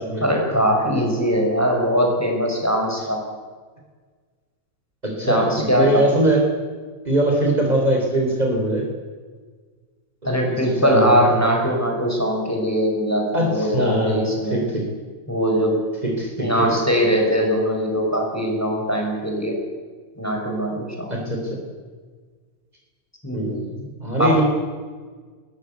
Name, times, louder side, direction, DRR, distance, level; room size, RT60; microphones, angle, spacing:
voice 1, 0.2-3.2 5.2-6.1 10.2-14.6 15.3-15.8 16.4-19.6 20.2-21.1 23.2-23.5 24.2-24.4, equal, 10° left, 0 dB, 5.5 m, -21 dB
voice 2, 5.0-6.4 7.0-8.9 10.2-11.2 13.3-14.2 14.5-14.9 16.0-16.7 21.1-21.6 23.3-24.4, right 1 dB, 30° right, 0 dB, 4.1 m, -22 dB
22.0 x 18.5 x 8.3 m, 1.5 s
omnidirectional pair, 1.5 m